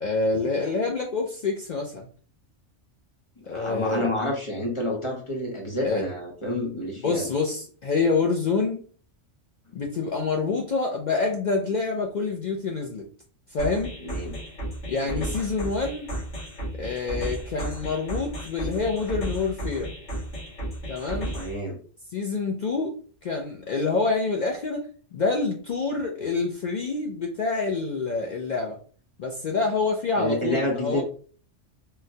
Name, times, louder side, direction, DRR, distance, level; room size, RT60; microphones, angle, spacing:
voice 1, 0.0-2.1 3.5-4.1 5.8-6.1 7.0-8.8 9.7-13.1 13.5-13.9 14.9-16.1 16.7-19.9 20.9-21.4 22.1-23.0 23.2-28.8 29.2-31.0, left 4 dB, 70° left, 1 dB, 0.4 m, -27 dB
voice 2, 3.5-7.3 14.0-14.4 15.0-15.3 21.3-21.8 30.2-31.0, left 1 dB, 30° left, -1 dB, 0.7 m, -29 dB
sound 1, 13.6-21.6, right 1 dB, 90° left, 1.7 m, -34 dB
3.8 x 2.1 x 2.6 m, 0.43 s
omnidirectional pair, 1.3 m